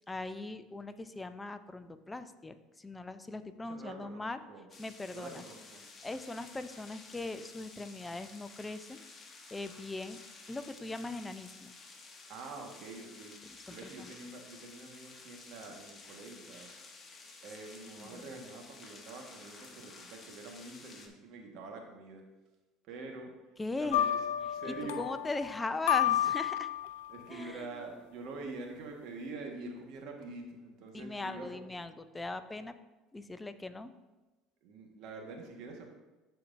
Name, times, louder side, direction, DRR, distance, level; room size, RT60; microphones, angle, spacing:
voice 1, 0.1-4.4 4.8-5.4 6.0-9.0 9.5-10.2 10.5-11.7 13.7-14.1 17.9-18.2 23.6-24.1 24.6-26.7 27.3-27.7 30.9-32.7 33.1-33.9, left 2 dB, 15° left, 11 dB, 0.5 m, -40 dB
voice 2, 3.7-4.7 5.1-5.9 12.3-13.4 13.7-16.7 17.4-22.2 22.9-24.2 24.5-25.0 27.1-31.7 34.6-35.9, right 3 dB, 65° right, 2 dB, 1.4 m, -46 dB
sound 1, 4.7-21.1, left 3 dB, 30° left, 1.2 m, -53 dB
sound 2, 23.9-27.1, left 11 dB, 80° left, 0.5 m, -31 dB
12.0 x 4.6 x 2.6 m, 1.1 s
supercardioid pair, 85°, 0 cm